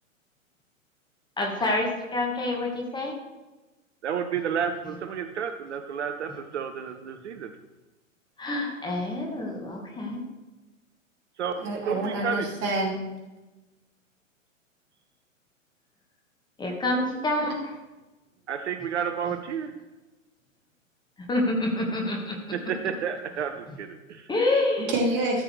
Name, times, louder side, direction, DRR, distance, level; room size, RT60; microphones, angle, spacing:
voice 1, 1.4-3.1 8.4-10.2 16.6-17.8 21.3-22.5 24.3-24.9, left 2 dB, 10° left, 0 dB, 1.5 m, -27 dB
voice 2, 4.0-7.5 11.4-12.5 18.5-19.7 22.5-24.3, right 7 dB, 60° right, 7 dB, 0.8 m, -31 dB
voice 3, 11.6-13.0 24.8-25.4, right 2 dB, 30° right, -1 dB, 2.6 m, -27 dB
13.5 x 7.6 x 3.2 m, 1.1 s
figure-of-eight pair, 110°, 39 cm